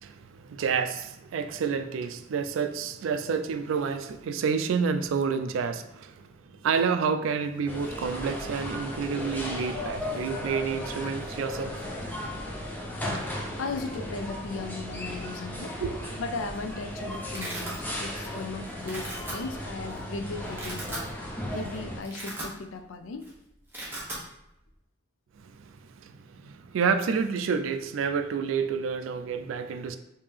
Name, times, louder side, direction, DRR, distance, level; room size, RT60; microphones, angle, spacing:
voice 1, 0.0-11.9 15.8-16.0 25.4-30.0, right 6 dB, 85° right, 0.3 m, -29 dB
sound 1, 7.7-22.0, left 1 dB, 10° left, 0.4 m, -36 dB
voice 2, 13.3-15.8 16.2-23.3, left 3 dB, 85° left, 0.4 m, -37 dB
Domestic sounds home sounds, 16.3-16.6 16.9-17.8 18.2-18.5 18.8-19.3 20.0-20.1 20.4-21.1 21.5-21.6 21.9-22.9 23.1-23.3 23.6-24.2, right 1 dB, 10° right, 0.8 m, -38 dB
3.3 x 2.7 x 3.4 m
head